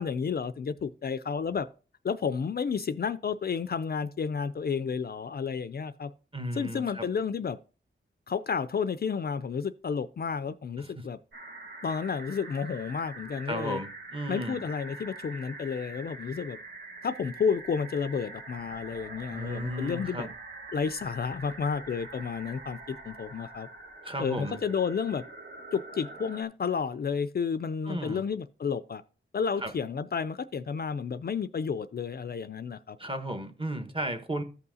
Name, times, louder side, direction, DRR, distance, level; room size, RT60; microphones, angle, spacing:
voice 1, 0.0-1.7 2.0-6.1 6.6-7.6 8.3-11.2 11.8-13.8 14.3-16.6 17.0-20.3 20.7-23.7 24.2-25.2 25.7-29.0 29.3-33.0, left 6 dB, 50° left, 0.4 m, -31 dB
voice 2, 6.3-7.1 10.8-11.0 13.5-14.6 19.3-20.3 24.0-24.6 27.9-28.2 29.6-29.7 33.0-34.4, right 1 dB, 25° right, 1.2 m, -35 dB
sound 1, 11.3-26.4, right 2 dB, 55° right, 1.4 m, -44 dB
14.0 x 5.5 x 2.7 m
wide cardioid pair, 105°, 21 cm